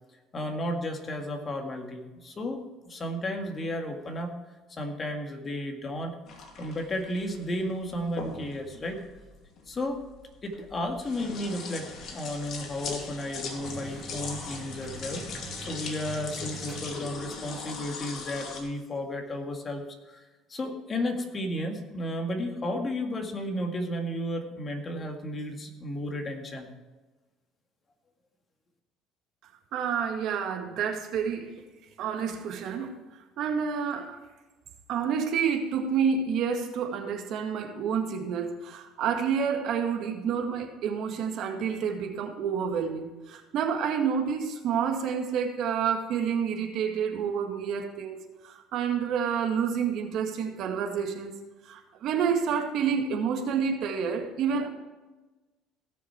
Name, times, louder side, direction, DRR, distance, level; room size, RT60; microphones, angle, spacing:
voice 1, 0.3-4.4 4.7-6.2 6.6-9.0 9.7-10.0 10.4-15.3 15.6-26.7, left 1 dB, 30° left, 4 dB, 1.9 m, -33 dB
sound 1, 6.3-18.6, left 4 dB, 55° left, 2.4 m, -40 dB
sound 2, 13.6-17.5, right 4 dB, 20° right, 3.0 m, -43 dB
voice 2, 29.7-31.6 32.0-32.9 33.4-34.2 34.9-48.2 48.4-51.3 51.7-54.7, right 7 dB, 65° right, 4 dB, 1.9 m, -29 dB
17.5 x 6.4 x 4.5 m, 1.2 s
cardioid pair, 105°, 0 cm